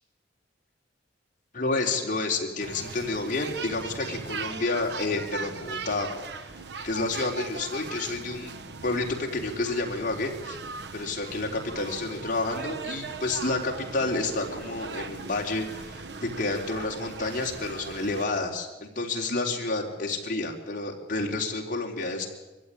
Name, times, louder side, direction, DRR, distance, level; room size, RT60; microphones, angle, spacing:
voice 1, 1.5-6.1 6.4-6.5 6.8-8.5 8.8-10.6 10.9-22.3, left 3 dB, 45° left, 0 dB, 3.7 m, -30 dB
sound 1, 2.6-18.2, right 4 dB, 60° right, 0.9 m, -39 dB
23.0 x 15.0 x 9.9 m, 1.1 s
head